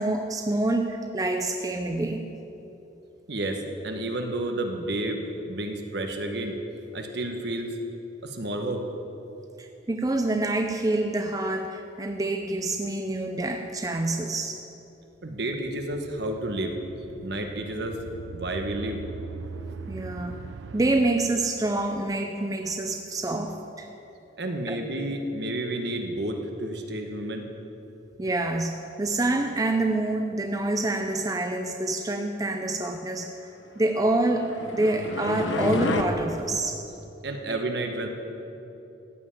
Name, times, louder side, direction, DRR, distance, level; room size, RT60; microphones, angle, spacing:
voice 1, 0.0-2.2 9.6-14.6 19.9-20.4 20.7-23.9 24.7-24.8 28.2-33.5 33.8-36.8, right 2 dB, 20° right, 4 dB, 0.5 m, -27 dB
voice 2, 3.3-6.5 6.9-7.7 8.2-8.8 15.2-16.8 17.2-18.0 18.3-19.0 24.4-27.5 37.2-38.1, right 1 dB, 60° right, 4 dB, 1.2 m, -31 dB
sound 1, 15.1-22.1, right 5 dB, 75° right, 0.4 m, -42 dB
sound 2, 34.1-36.0, left 2 dB, 80° left, 1.0 m, -29 dB
14.5 x 5.6 x 8.5 m, 3.0 s
head